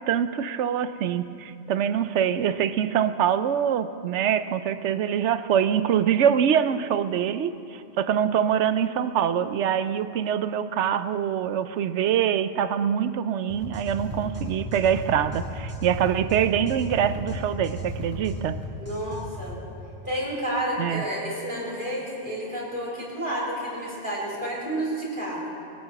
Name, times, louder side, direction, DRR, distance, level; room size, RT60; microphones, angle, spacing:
voice 1, 0.0-18.6 20.8-21.0, right 9 dB, 80° right, 12 dB, 0.9 m, -24 dB
sound 1, 13.5-19.6, equal, 10° right, 2.9 m, -34 dB
voice 2, 18.8-19.6 20.0-25.5, right 1 dB, 45° right, -6 dB, 3.7 m, -30 dB
21.5 x 8.8 x 5.9 m, 2.6 s
omnidirectional pair, 1.2 m